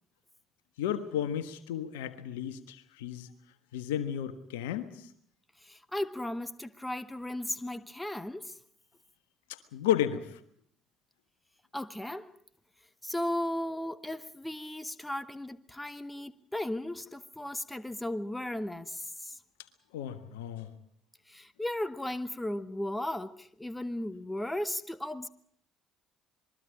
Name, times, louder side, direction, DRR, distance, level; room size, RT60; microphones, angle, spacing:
voice 1, 0.8-3.3 3.7-5.1 9.5-10.4 19.9-20.7, left 10 dB, 80° left, 1.4 m, -33 dB
voice 2, 5.6-8.6 11.7-12.3 13.0-19.4 21.3-25.3, left 1 dB, 10° left, 1.3 m, -36 dB
27.0 x 22.0 x 5.0 m
hypercardioid pair, 55°, 0 cm